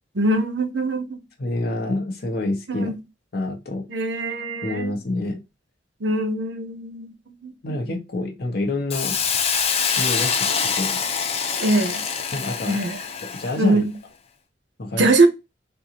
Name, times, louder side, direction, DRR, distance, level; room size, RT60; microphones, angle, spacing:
voice 1, 0.1-1.2 2.7-2.9 3.9-4.9 6.0-7.1 7.4-7.5 11.6-12.0 12.7-13.0 13.6-13.9 15.0-15.3, right 2 dB, 70° right, 0.7 m, -22 dB
voice 2, 1.4-2.9 3.3-3.9 4.6-5.4 7.6-9.2 10.0-11.1 12.3-12.9 13.2-13.9 14.8-15.1, left 2 dB, 55° left, 0.9 m, -27 dB
Hiss, 8.9-13.6, left 6 dB, 35° left, 0.4 m, -25 dB
3.7 x 2.3 x 2.8 m
head